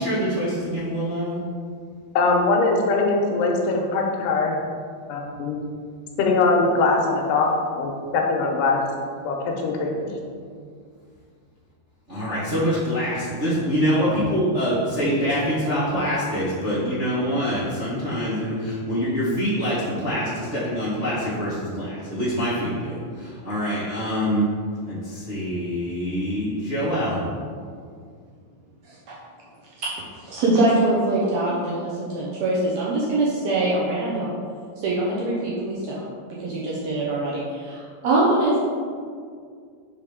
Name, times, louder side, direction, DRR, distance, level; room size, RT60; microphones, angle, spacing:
voice 1, 0.0-1.4 12.1-24.5 24.9-27.2, equal, 40° right, -12 dB, 1.0 m, -25 dB
voice 2, 2.2-4.6 5.1-5.6 6.2-7.5 7.7-8.8 9.3-10.1, left 3 dB, 85° left, 1 dB, 2.4 m, -21 dB
voice 3, 30.2-34.3 34.8-36.1 36.4-38.6, right 2 dB, 75° right, -5 dB, 1.7 m, -23 dB
5.2 x 4.8 x 5.1 m, 2.1 s
omnidirectional pair, 3.9 m